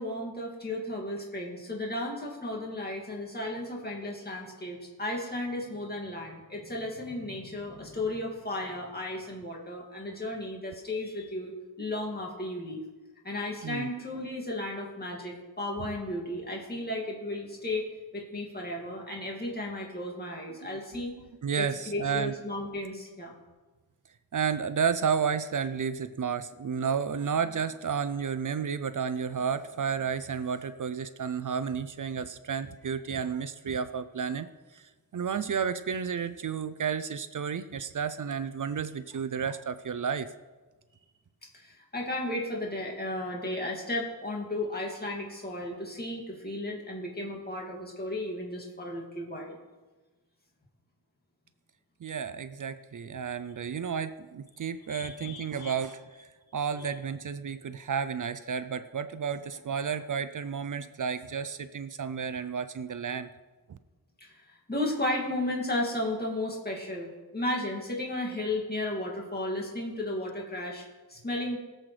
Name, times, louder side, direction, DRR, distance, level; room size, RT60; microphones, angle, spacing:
voice 1, 0.0-12.8 13.2-21.2 21.6-23.4 41.5-49.6 54.9-55.8 56.8-56.9 64.2-71.6, left 1 dB, 25° left, -1 dB, 2.2 m, -34 dB
voice 2, 20.6-21.1 21.4-22.3 24.3-34.5 34.7-40.3 52.0-56.0 56.5-63.3 63.7-63.8, right 6 dB, 55° right, 12 dB, 0.5 m, -32 dB
21.5 x 7.7 x 3.3 m, 1.3 s
wide cardioid pair, 130°, 38 cm